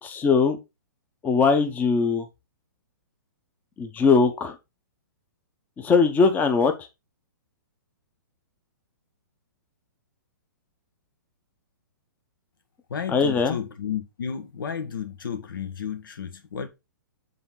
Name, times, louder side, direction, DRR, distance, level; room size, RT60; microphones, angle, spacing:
voice 1, 0.0-0.6 1.2-2.3 3.8-4.6 5.8-6.9 13.1-13.6, left 5 dB, 15° left, 0.8 m, -21 dB
voice 2, 12.9-16.7, left 7 dB, 80° left, 1.3 m, -32 dB
7.0 x 3.9 x 3.8 m
hypercardioid pair, 140°, 11 cm